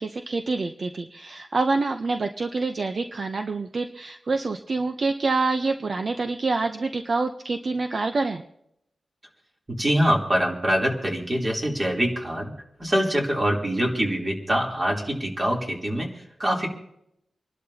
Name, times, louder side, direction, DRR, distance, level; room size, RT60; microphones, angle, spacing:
voice 1, 0.0-8.4, right 3 dB, 45° right, 7 dB, 0.8 m, -26 dB
voice 2, 9.7-12.5 12.8-16.7, equal, 25° right, -1 dB, 3.3 m, -24 dB
27.0 x 11.5 x 2.9 m, 0.76 s
wide cardioid pair, 110°, 0 cm